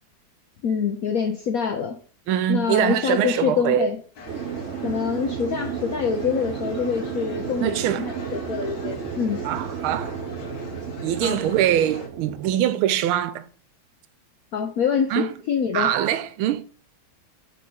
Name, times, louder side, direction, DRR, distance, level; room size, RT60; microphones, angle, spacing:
voice 1, 0.6-2.0 2.5-4.0 4.8-9.4 11.2-11.4 14.5-15.9, left 6 dB, 75° left, 0.8 m, -25 dB
voice 2, 2.3-3.9 7.6-8.1 9.4-10.2 11.0-13.5 15.1-15.3 15.7-16.6, right 11 dB, 90° right, 1.5 m, -23 dB
sound 1, 4.1-12.1, left 3 dB, 50° left, 1.5 m, -41 dB
sound 2, 4.3-12.6, right 7 dB, 70° right, 0.6 m, -33 dB
8.3 x 4.1 x 4.3 m
omnidirectional pair, 2.3 m